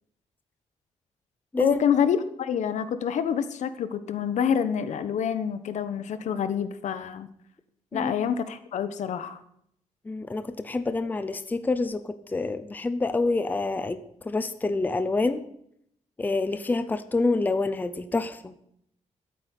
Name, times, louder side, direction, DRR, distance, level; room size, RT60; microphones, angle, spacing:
voice 1, 1.6-7.3 7.9-9.4, left 8 dB, 75° left, 12 dB, 1.2 m, -27 dB
voice 2, 10.1-15.4 16.2-18.5, left 3 dB, 15° left, 11 dB, 0.7 m, -27 dB
12.5 x 9.2 x 8.3 m, 0.71 s
wide cardioid pair, 180°, 12 cm